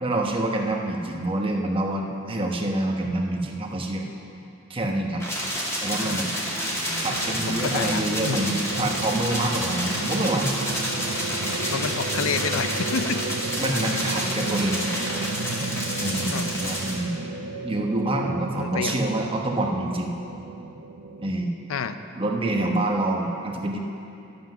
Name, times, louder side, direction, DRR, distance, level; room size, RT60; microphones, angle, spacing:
voice 1, 0.0-4.1 4.7-5.2 5.8-6.3 7.0-10.5 13.6-15.0 15.5-15.6 16.0-17.3 17.6-20.1 21.2-21.5 22.2-23.8, right 1 dB, 25° right, 1 dB, 1.0 m, -26 dB
sound 1, 5.2-16.9, equal, 15° left, 1.8 m, -29 dB
sound 2, 5.5-21.2, right 3 dB, 90° right, 0.7 m, -34 dB
voice 2, 7.5-8.5 11.7-13.2 16.3-16.5 18.5-19.0 21.7-22.0, left 5 dB, 85° left, 11 dB, 0.5 m, -29 dB
sound 3, 10.0-15.2, right 3 dB, 60° right, 1.0 m, -44 dB
11.5 x 7.8 x 6.2 m, 2.7 s
head